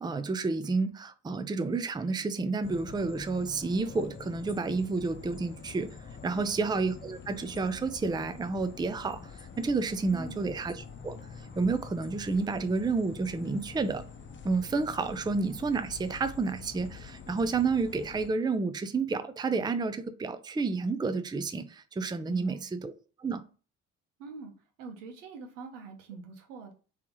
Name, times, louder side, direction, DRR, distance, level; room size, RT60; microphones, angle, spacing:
voice 1, 0.0-5.9 6.2-11.2 11.6-14.0 14.4-22.9 23.2-23.4, right 4 dB, 10° right, 0.5 m, -30 dB
sound 1, 2.6-18.3, left 5 dB, 30° left, 0.8 m, -46 dB
voice 2, 10.1-10.4 22.3-22.6 24.2-24.5 24.8-26.7, right 4 dB, 85° right, 1.0 m, -44 dB
3.4 x 3.1 x 4.6 m
hypercardioid pair, 50°, 38 cm